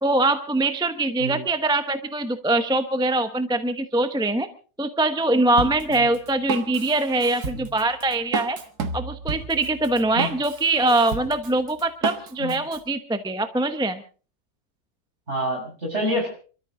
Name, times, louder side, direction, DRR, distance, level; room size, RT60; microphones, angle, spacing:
voice 1, 0.0-4.5 4.8-8.6 8.9-14.0, right 2 dB, 5° right, 9 dB, 0.7 m, -23 dB
Drum kit, 5.6-12.8, right 5 dB, 70° right, 1.9 m, -32 dB
voice 2, 15.3-16.3, equal, 40° right, 1 dB, 6.3 m, -27 dB
28.0 x 13.0 x 3.8 m, 0.38 s
omnidirectional pair, 1.7 m